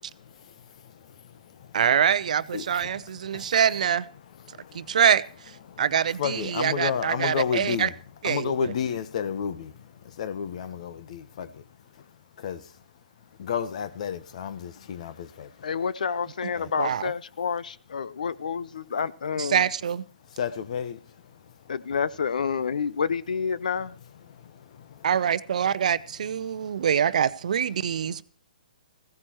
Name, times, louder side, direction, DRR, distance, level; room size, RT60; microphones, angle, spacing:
voice 1, 1.7-4.1 4.7-5.2 5.8-7.9 8.2-8.5 16.8-17.1 19.4-20.0 25.0-28.2, right 8 dB, 60° right, 0.6 m, -24 dB
voice 2, 6.2-7.9 8.2-9.7 10.2-11.5 12.4-12.6 13.4-15.5 16.5-16.7 20.4-21.0, left 7 dB, 50° left, 1.2 m, -30 dB
voice 3, 15.6-19.6 21.7-23.9, left 6 dB, 65° left, 0.7 m, -29 dB
16.0 x 15.0 x 3.1 m
figure-of-eight pair, 125°, 4 cm